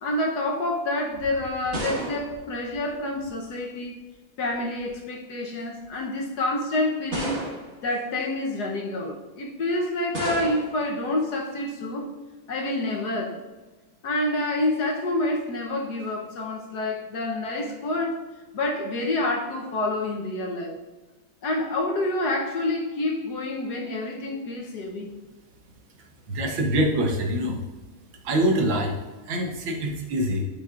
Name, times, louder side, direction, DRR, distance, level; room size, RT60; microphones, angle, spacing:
voice 1, 0.0-4.0 4.4-7.4 7.8-12.1 12.5-13.4 14.0-18.3 18.5-20.8 21.4-25.1, left 2 dB, 60° left, 1 dB, 1.3 m, -28 dB
sound 1, 1.1-3.5 4.5-5.0 5.8-5.9 7.1-7.9 10.1-10.9, right 1 dB, 40° right, 2.2 m, -34 dB
voice 2, 26.3-27.6 28.2-30.4, right 1 dB, 75° right, 2 dB, 1.8 m, -25 dB
12.0 x 5.6 x 2.5 m, 1.3 s
omnidirectional pair, 2.2 m